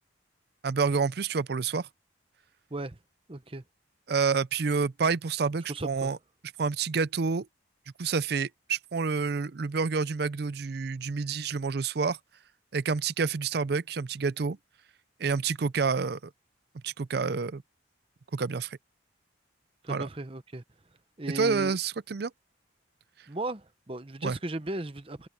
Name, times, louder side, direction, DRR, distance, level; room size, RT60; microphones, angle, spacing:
voice 1, 0.6-1.9 4.1-6.2 6.6-7.5 8.0-12.2 12.7-14.6 15.2-16.2 16.8-17.6 18.3-18.8 19.9-20.1 21.3-22.3 24.2-24.3, right 5 dB, 55° right, 0.5 m, -28 dB
voice 2, 3.3-3.6 5.7-6.1 19.8-20.6 21.2-21.8 23.3-25.3, right 2 dB, 30° right, 0.9 m, -36 dB
head